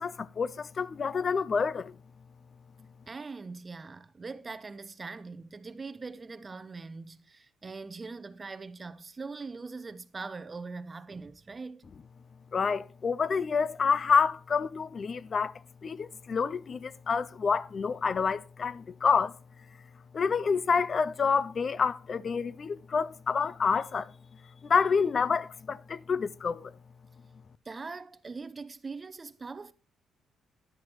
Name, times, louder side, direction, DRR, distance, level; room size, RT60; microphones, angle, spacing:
voice 1, 0.0-1.9 12.5-15.5 15.8-19.4 20.1-24.1 24.6-26.7, left 5 dB, 45° left, 0.3 m, -28 dB
voice 2, 3.1-11.9 27.6-29.7, right 4 dB, 30° right, 0.6 m, -42 dB
10.5 x 10.0 x 3.0 m
cardioid pair, 90°, 0 cm